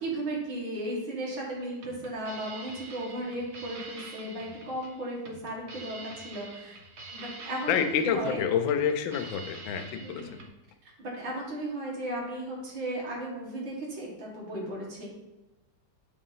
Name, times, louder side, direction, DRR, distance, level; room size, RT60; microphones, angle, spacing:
voice 1, 0.0-6.8 7.1-8.4 10.0-10.4 11.0-15.1, right 1 dB, 80° right, -3 dB, 2.4 m, -35 dB
sound 1, 1.6-10.5, right 3 dB, 55° right, 0.7 m, -46 dB
voice 2, 7.7-10.4, left 8 dB, 90° left, 8 dB, 1.3 m, -28 dB
6.7 x 2.7 x 5.5 m, 1.0 s
omnidirectional pair, 2.0 m